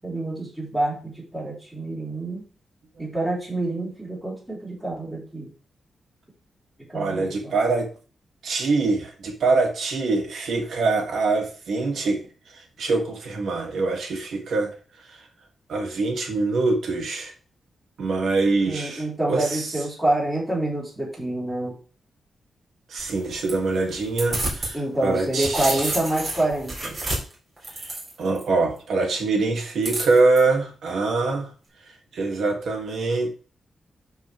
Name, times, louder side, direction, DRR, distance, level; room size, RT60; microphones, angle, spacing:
voice 1, 0.0-2.4 3.0-5.5 6.8-7.6 18.6-21.7 24.7-27.0, right 1 dB, 10° right, -6 dB, 4.6 m, -27 dB
voice 2, 6.9-7.9 8.4-12.2 12.8-14.7 15.1-15.2 15.7-17.3 18.0-19.4 22.9-25.9 27.8-31.5 32.1-33.3, right 3 dB, 70° right, 1 dB, 2.8 m, -24 dB
sound 1, 23.0-24.7 25.1-28.4 29.8-30.4, right 2 dB, 25° right, 3.9 m, -30 dB
12.5 x 4.9 x 3.6 m, 0.37 s
wide cardioid pair, 180°, 0 cm